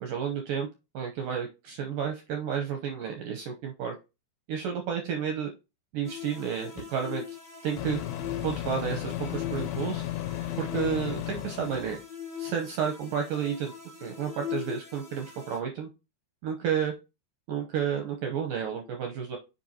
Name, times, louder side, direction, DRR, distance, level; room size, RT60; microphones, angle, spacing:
voice 1, 0.0-0.7 0.9-3.9 4.5-5.5 5.9-7.2 7.6-8.0 8.4-10.0 10.6-12.0 12.4-13.7 14.0-15.9 16.4-16.9 17.5-19.4, right 7 dB, 80° right, 3 dB, 2.0 m, -31 dB
sound 1, 6.0-15.6, left 9 dB, 15° right, 0.6 m, -41 dB
Microwave oven, 6.8-6.9 7.8-12.0, left 13 dB, 80° left, 2.6 m, -34 dB
7.7 x 5.1 x 2.8 m, 0.27 s
omnidirectional pair, 4.9 m